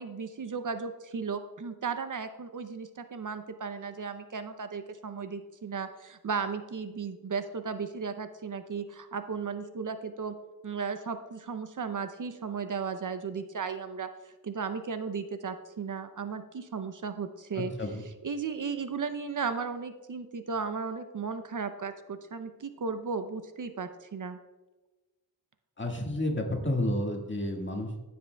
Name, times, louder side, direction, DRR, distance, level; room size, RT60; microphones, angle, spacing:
voice 1, 0.0-10.3 10.6-17.7 18.2-24.4, right 5 dB, 55° right, 9 dB, 0.6 m, -35 dB
voice 2, 17.5-18.0 25.8-28.0, left 1 dB, 30° left, 0 dB, 1.7 m, -31 dB
15.0 x 7.7 x 2.2 m, 1.2 s
wide cardioid pair, 95°, 37 cm